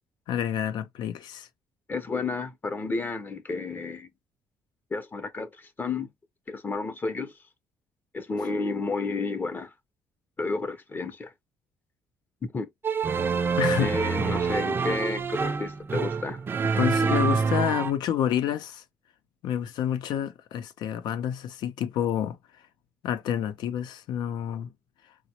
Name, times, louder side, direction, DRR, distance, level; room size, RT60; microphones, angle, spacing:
voice 1, 0.3-1.5 13.6-13.9 14.3-14.4 16.8-18.8 19.4-22.4 23.0-24.7, left 10 dB, 75° left, 0.6 m, -28 dB
voice 2, 1.9-4.1 4.9-5.5 5.8-6.1 6.5-7.3 8.1-9.7 10.4-11.3 12.5-12.7 13.8-16.4, left 3 dB, 25° left, 0.6 m, -31 dB
sound 1, 12.8-17.9, right 5 dB, 30° right, 0.5 m, -26 dB
4.1 x 2.1 x 2.8 m
cardioid pair, 105°, 7 cm